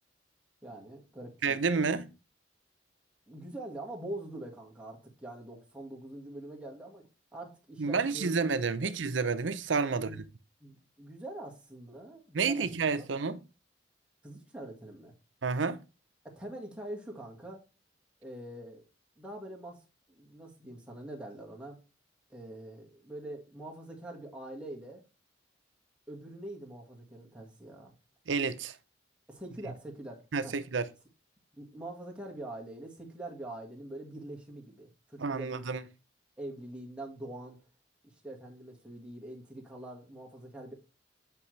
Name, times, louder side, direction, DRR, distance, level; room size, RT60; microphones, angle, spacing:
voice 1, 0.6-1.9 3.3-7.0 7.3-8.3 8.8-8.9 9.9-10.2 10.6-12.7 13.0-13.1 14.2-15.1 16.2-17.7 18.2-18.8 19.2-19.8 20.1-21.8 22.3-25.0 26.1-27.9 29.3-30.5 31.5-35.7 36.4-37.6 38.2-40.7, right 1 dB, 5° right, 1.6 m, -44 dB
voice 2, 1.4-2.1 7.8-10.1 12.3-13.4 15.4-15.8 28.3-28.7 30.3-30.9 35.2-35.8, right 4 dB, 75° right, 0.6 m, -30 dB
8.4 x 5.4 x 3.2 m
head